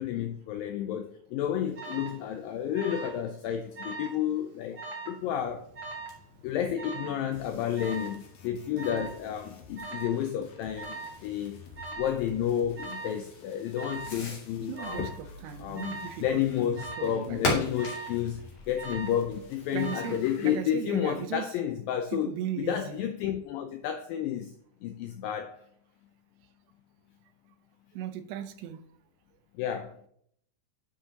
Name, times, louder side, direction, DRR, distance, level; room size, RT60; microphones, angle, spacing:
voice 1, 0.0-5.7 6.4-11.0 11.2-11.6 11.9-15.1 15.6-24.5 24.8-25.6 29.6-30.0, left 10 dB, 80° left, 2.1 m, -31 dB
Alarm, 1.8-2.2 2.7-3.2 3.5-4.2 4.8-5.2 5.8-6.2 6.8-7.2 7.8-8.2 8.8-9.2 9.8-10.2 10.8-11.2 11.8-12.2 12.8-13.2 13.8-14.2 14.8-15.2 15.8-16.2 16.8-17.2 17.8-18.2 18.8-19.3 19.8-20.2, right 3 dB, 60° right, 1.2 m, -40 dB
Fireworks, 5.4-20.0, left 2 dB, 45° left, 3.4 m, -41 dB
sound 1, 7.3-20.6, left 4 dB, 65° left, 3.0 m, -52 dB
voice 2, 14.6-17.4 19.7-21.5 22.1-23.0 27.9-28.8, right 10 dB, 90° right, 3.0 m, -37 dB
11.0 x 7.0 x 2.9 m
omnidirectional pair, 4.7 m